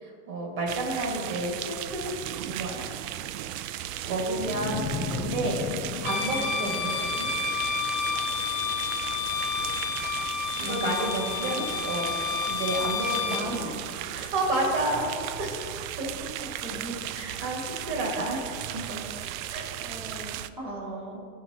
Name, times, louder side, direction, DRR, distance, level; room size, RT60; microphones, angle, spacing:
voice 1, 0.0-2.2 2.4-2.9 3.8-5.7 6.0-7.3 10.6-11.6 11.9-12.2 12.5-13.2 14.1-15.1 15.4-15.6 16.0-16.2 17.1-17.6 17.9-18.4 18.9-19.0 19.5-19.7 20.6-21.2, right 2 dB, 55° right, -1 dB, 2.0 m, -31 dB
sound 1, 0.7-20.5, right 12 dB, 80° right, 0.5 m, -36 dB
sound 2, 4.4-7.6, left 6 dB, 60° left, 0.7 m, -35 dB
Bowed string instrument, 6.0-13.5, left 6 dB, 25° left, 1.0 m, -30 dB
voice 2, 10.6-11.7 13.3-13.7 16.6-17.1 19.8-20.9, right 1 dB, 15° right, -6 dB, 1.3 m, -38 dB
15.0 x 5.7 x 2.9 m, 2.5 s
supercardioid pair, 175°, 40 cm